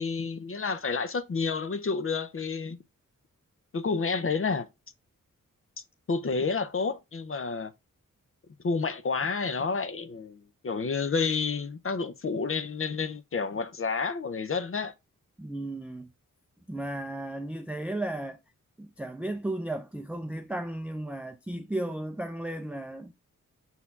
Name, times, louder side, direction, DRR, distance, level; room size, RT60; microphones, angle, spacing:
voice 1, 0.0-2.8 3.7-4.7 6.1-7.7 8.6-14.9, left 4 dB, 40° left, 0.6 m, -30 dB
voice 2, 15.4-16.1 16.7-18.4 18.8-23.1, right 1 dB, 5° right, 0.5 m, -34 dB
5.6 x 4.1 x 2.3 m
cardioid pair, 45°, 33 cm